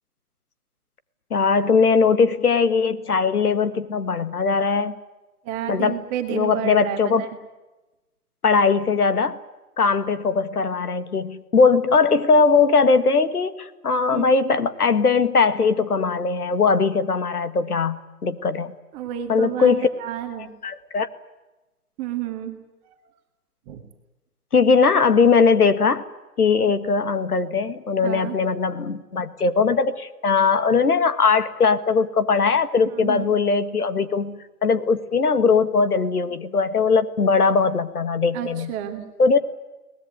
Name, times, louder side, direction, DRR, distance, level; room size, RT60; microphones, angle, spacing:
voice 1, 1.3-4.9 5.7-6.0 6.3-7.2 8.4-9.4 9.8-18.7 19.3-19.9 20.6-21.1 24.5-26.0 26.4-38.7 39.2-39.4, left 5 dB, 75° left, 12 dB, 1.9 m, -20 dB
voice 2, 5.4-7.3 14.1-14.2 18.9-19.7 20.0-20.5 22.0-22.6 22.9-23.0 23.7-23.8 26.6-26.7 28.0-28.4 32.9-33.2 38.3-39.1, right 10 dB, 15° right, 5 dB, 1.7 m, -30 dB
22.0 x 19.5 x 9.7 m, 1.1 s
hypercardioid pair, 150°, 45 cm